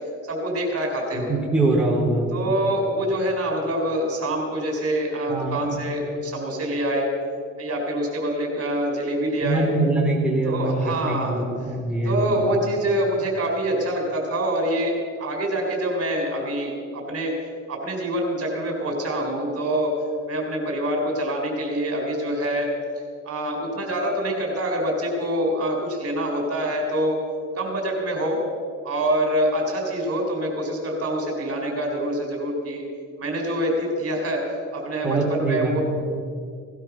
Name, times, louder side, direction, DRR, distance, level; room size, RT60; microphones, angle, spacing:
voice 1, 0.3-1.4 2.3-7.1 7.6-9.7 10.4-11.4 12.0-17.3 17.7-19.9 20.3-22.7 23.3-27.2 27.6-28.4 28.8-32.8 33.2-35.8, right 1 dB, 50° right, 1 dB, 4.0 m, -25 dB
voice 2, 1.1-2.3 5.3-5.8 9.4-12.4 35.0-35.8, right 2 dB, 5° right, -4 dB, 3.9 m, -23 dB
18.0 x 12.0 x 6.0 m, 2.3 s
cardioid pair, 90°, 30 cm